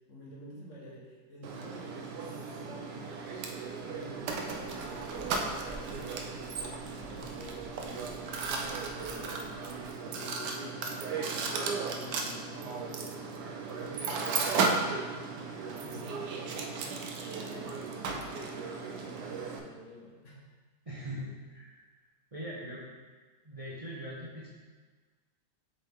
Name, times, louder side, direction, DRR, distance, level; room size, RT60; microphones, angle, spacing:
voice 1, 0.1-3.2 3.8-6.6 6.9-15.4 15.7-17.0 17.4-20.5, left 1 dB, 50° left, -4 dB, 1.4 m, -49 dB
Mechanisms, 1.4-19.6, right 4 dB, 85° right, 1.3 m, -35 dB
sound 1, 4.0-9.9, equal, 10° left, 0.8 m, -53 dB
voice 2, 20.9-21.8 22.3-22.8 23.4-24.5, equal, 25° right, -6 dB, 0.8 m, -41 dB
7.4 x 4.1 x 3.6 m, 1.4 s
omnidirectional pair, 1.7 m